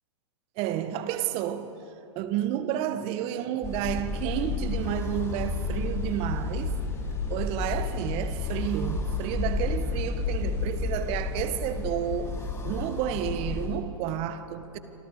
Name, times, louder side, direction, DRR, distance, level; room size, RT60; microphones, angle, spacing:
voice 1, 0.6-1.7 2.1-6.7 7.3-14.8, right 11 dB, 40° right, 1.6 m, -31 dB
sound 1, 3.6-13.7, left 4 dB, 20° left, 5.1 m, -31 dB
28.5 x 25.5 x 5.1 m
hypercardioid pair, 110°, 16 cm